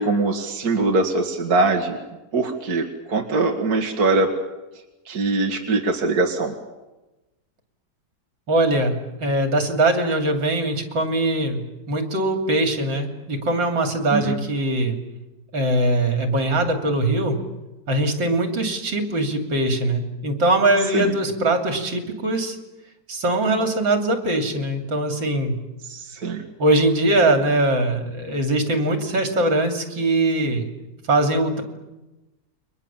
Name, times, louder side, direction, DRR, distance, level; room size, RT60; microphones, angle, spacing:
voice 1, 0.0-2.0 2.3-4.3 5.1-6.5 14.1-14.4 20.9-21.1 25.9-26.4, right 3 dB, 50° right, 2 dB, 2.4 m, -22 dB
voice 2, 8.5-15.0 15.5-17.4 17.9-22.6 23.1-25.6 26.6-30.7 31.1-31.6, right 1 dB, 70° right, 5 dB, 3.7 m, -21 dB
29.5 x 23.5 x 7.3 m, 1.0 s
omnidirectional pair, 2.1 m